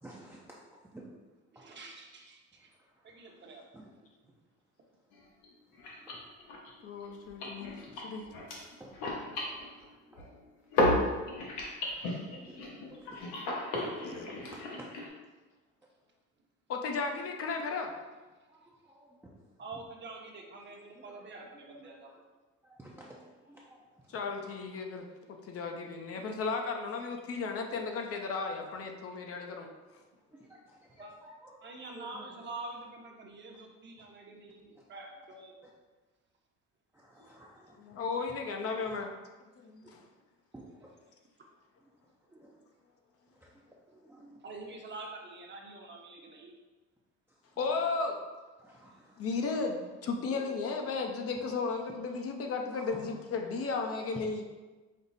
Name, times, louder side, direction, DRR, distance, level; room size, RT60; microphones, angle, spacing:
voice 1, 0.0-1.1 1.5-1.8 2.7-4.1 5.7-6.2 7.9-8.0 8.4-8.5 8.8-10.4 10.6-11.3 11.7-12.0 12.3-13.8 14.5-14.9 18.5-19.5 20.9-21.3 22.1-22.2 22.6-24.4 30.3-31.6 31.9-32.3 34.8-34.9 35.6-35.7 36.9-38.3 38.8-38.9 39.8-40.0 40.5-41.0 41.8-41.9 42.3-42.6 43.3-44.4 47.3-48.1 48.6-49.5 52.7-53.1 54.1-54.5, right 1 dB, 5° right, -5 dB, 0.5 m, -54 dB
voice 2, 1.5-2.7 3.0-3.7 13.7-14.3 19.6-22.1 25.8-25.9 31.0-31.1 31.6-35.5 44.4-46.6 50.5-50.6, right 3 dB, 35° right, 1 dB, 0.8 m, -46 dB
sound 1, 5.1-5.2 5.4-5.5 5.7-10.4 10.7-15.1, left 1 dB, 80° left, 1.0 m, -34 dB
voice 3, 6.8-7.8 8.0-8.2 14.1-14.3 16.7-17.9 24.1-29.7 37.8-39.1 39.6-40.0 47.6-48.2 49.2-54.4, left 4 dB, 50° left, 3 dB, 0.6 m, -34 dB
5.2 x 2.0 x 4.0 m, 1.2 s
cardioid pair, 95°, 31 cm